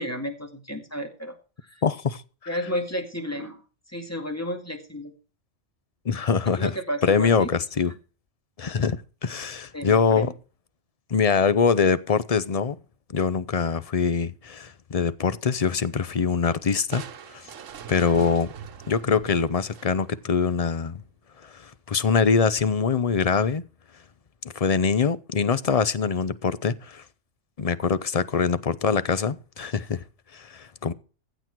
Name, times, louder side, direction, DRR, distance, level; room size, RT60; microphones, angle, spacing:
voice 1, 0.0-1.4 1.7-1.8 2.5-3.6 3.9-5.1 6.5-7.5 9.7-10.3, equal, 10° left, 2.2 m, -32 dB
voice 2, 1.8-2.2 6.0-6.8 7.0-7.9 8.6-10.3 11.1-12.8 13.1-17.0 17.3-17.4 17.9-18.5 18.9-21.0 21.4-23.6 24.5-27.0 27.6-30.0 30.3-30.9, left 5 dB, 40° left, 0.6 m, -23 dB
Crushing, 16.9-20.3, right 8 dB, 90° right, 1.3 m, -41 dB
15.0 x 8.1 x 4.6 m
omnidirectional pair, 1.3 m